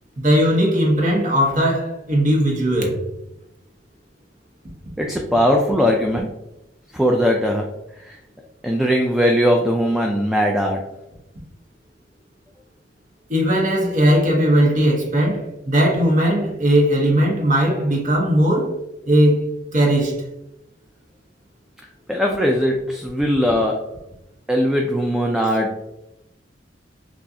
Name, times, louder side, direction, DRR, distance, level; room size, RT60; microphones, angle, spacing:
voice 1, 0.2-3.0 13.3-18.7 19.0-20.2, equal, 45° right, 1.0 m, -18 dB
voice 2, 5.0-6.3 6.9-7.6 8.0-8.2 8.6-10.9 22.1-23.8 24.5-25.9, equal, 5° right, 0.3 m, -19 dB
6.1 x 2.4 x 2.7 m
head